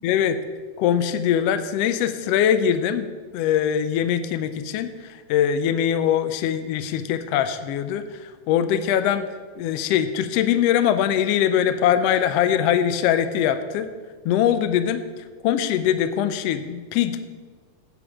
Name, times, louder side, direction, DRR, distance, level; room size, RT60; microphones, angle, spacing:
voice 1, 0.0-0.4 0.8-9.3 9.6-13.9 14.2-15.0 15.4-17.3, left 9 dB, 85° left, 11 dB, 1.4 m, -22 dB
8.8 x 8.5 x 4.9 m, 1.5 s
omnidirectional pair, 3.5 m